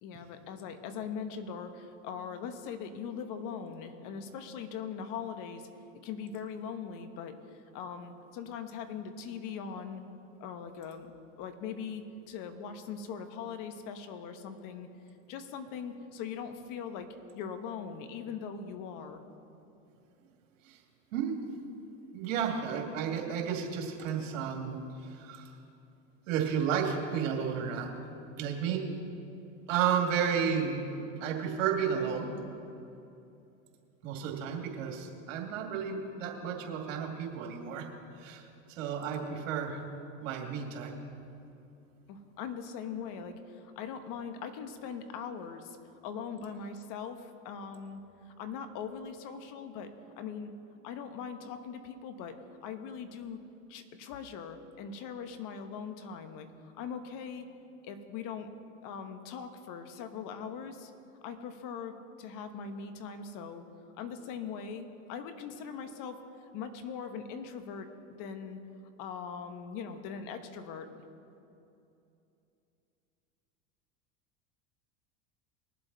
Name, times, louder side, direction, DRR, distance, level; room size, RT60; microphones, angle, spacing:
voice 1, 0.0-5.7 6.0-10.0 10.4-11.1 11.4-14.9 15.3-17.1 17.3-19.2 42.1-45.8 46.0-48.0 48.3-50.5 50.8-53.4 53.7-57.5 57.8-58.5 58.8-60.9 61.2-63.7 63.9-67.9 68.2-68.6 69.0-70.9, left 6 dB, 55° left, 8 dB, 1.3 m, -41 dB
voice 2, 22.1-25.5 26.3-27.9 28.4-28.8 29.7-30.9 31.2-32.3 34.0-37.9 38.2-38.4 38.8-39.8 40.2-40.9, right 7 dB, 70° right, 1 dB, 2.5 m, -32 dB
21.0 x 7.7 x 4.1 m, 2.8 s
hypercardioid pair, 100°, 39 cm